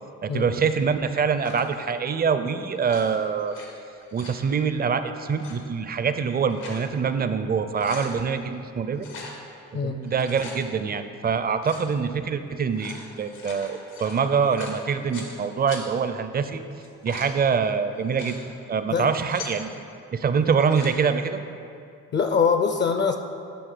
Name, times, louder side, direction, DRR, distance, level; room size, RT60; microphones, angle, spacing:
voice 1, 0.2-3.6 4.1-9.1 9.7-16.6 17.0-18.4 18.7-19.7 20.1-21.4, right 6 dB, 30° right, 10 dB, 0.5 m, -25 dB
sound 1, 1.4-1.8 2.8-3.7 4.0-4.4 5.3-5.6 6.2-6.9 7.3-7.4 7.6-8.1 9.0-9.4 10.0-10.6 11.6-11.9 12.6-15.3 15.7-15.8 16.7-17.3 17.9-18.4 19.0-19.6 20.5-20.9, left 4 dB, 90° left, 1.4 m, -41 dB
voice 2, 22.1-23.2, left 6 dB, 40° left, 6 dB, 0.5 m, -22 dB
9.3 x 3.5 x 6.7 m, 2.5 s
cardioid pair, 90°, 30 cm